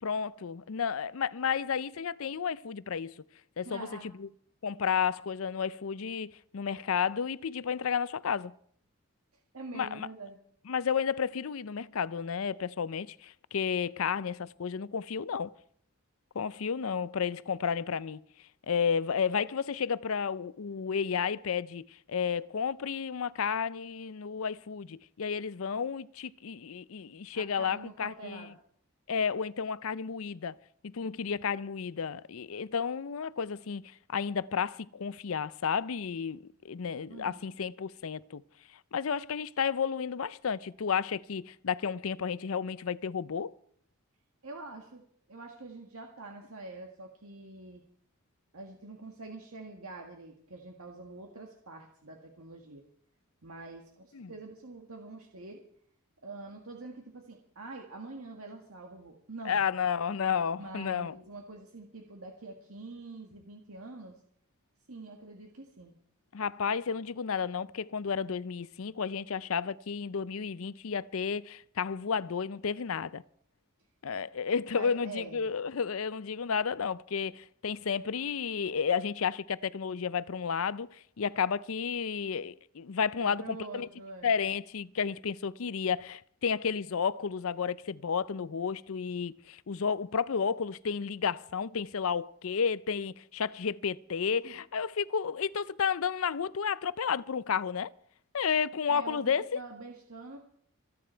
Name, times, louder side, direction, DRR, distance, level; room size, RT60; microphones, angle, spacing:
voice 1, 0.0-3.1 3.6-3.9 4.2-4.3 4.6-8.5 9.7-10.1 10.7-15.5 16.3-18.2 18.7-28.5 29.1-30.5 30.8-38.4 38.7-43.5 54.1-54.3 59.4-61.2 66.3-73.2 74.0-83.9 84.2-97.9 98.3-99.6, left 6 dB, 70° left, 0.5 m, -32 dB
voice 2, 3.6-4.1 9.5-10.4 27.3-28.5 37.1-37.5 44.4-45.0 45.3-47.8 48.5-52.8 53.4-55.6 56.2-59.6 60.6-64.2 64.9-66.0 74.7-75.5 83.2-84.3 94.4-94.5 98.9-100.4, right 3 dB, 80° right, 1.9 m, -45 dB
27.0 x 9.8 x 4.5 m
head